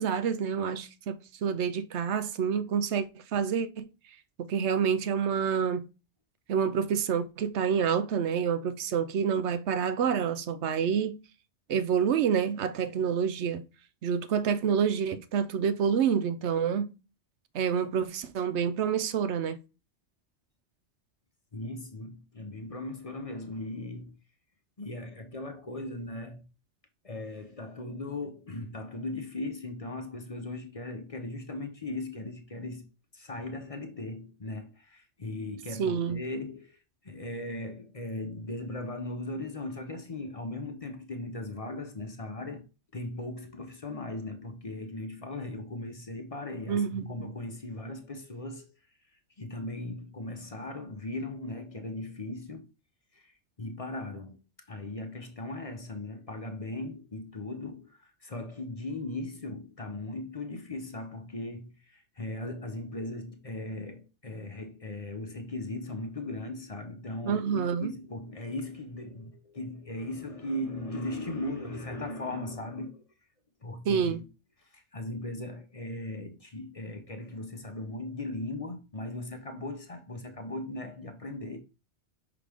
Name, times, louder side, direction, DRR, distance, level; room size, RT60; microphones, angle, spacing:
voice 1, 0.0-3.9 4.4-5.9 6.5-11.2 11.7-13.6 14.0-16.9 17.5-19.6 35.8-36.2 46.7-47.3 67.3-67.9 73.9-74.2, right 7 dB, 80° right, 0.9 m, -28 dB
voice 2, 21.5-24.2 24.8-26.4 27.0-32.8 33.1-42.6 42.9-48.7 49.4-52.7 53.1-54.4 54.7-73.0 73.6-74.3 74.6-81.6, left 2 dB, 35° left, 0.8 m, -38 dB
5.8 x 4.9 x 3.4 m
omnidirectional pair, 1.2 m